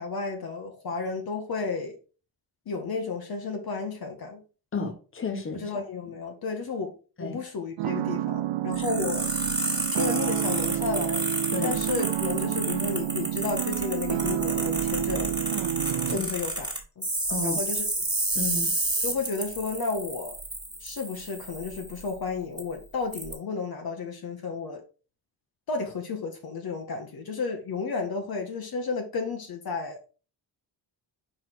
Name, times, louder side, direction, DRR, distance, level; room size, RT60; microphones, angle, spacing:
voice 1, 0.0-2.0 2.7-4.4 5.5-9.3 9.9-11.3 11.6-15.4 16.1-16.6 17.0-17.1 17.4-17.8 19.0-20.4 20.8-24.8 25.7-30.0, left 4 dB, 55° left, 1.0 m, -32 dB
voice 2, 4.7-5.7 7.2-7.4 11.5-11.8 16.1-16.3 17.3-17.6 18.3-18.7, left 3 dB, 30° left, 1.2 m, -32 dB
sound 1, 7.8-16.2, right 12 dB, 85° right, 0.6 m, -29 dB
sound 2, 8.7-22.1 22.6-22.7 23.1-23.3, right 2 dB, 10° right, 1.6 m, -31 dB
5.1 x 4.4 x 4.4 m
wide cardioid pair, 145°, 45 cm